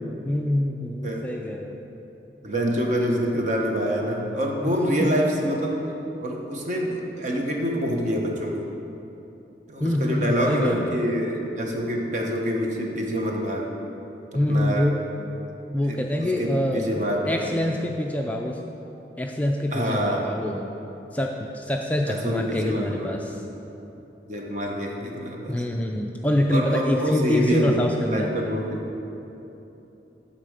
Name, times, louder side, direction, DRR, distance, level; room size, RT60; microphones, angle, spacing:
voice 1, 0.2-1.8 5.0-5.1 9.8-11.0 14.3-15.0 15.7-16.9 17.2-18.6 19.2-20.7 21.1-23.4 25.5-28.4, left 1 dB, 10° left, 1 dB, 0.3 m, -25 dB
voice 2, 2.4-5.8 6.2-8.6 9.7-13.7 14.3-14.9 15.8-17.5 19.7-20.3 22.1-23.2 24.2-25.6 26.5-28.8, equal, 45° right, 0 dB, 1.0 m, -26 dB
10.0 x 4.1 x 6.4 m, 3.0 s
head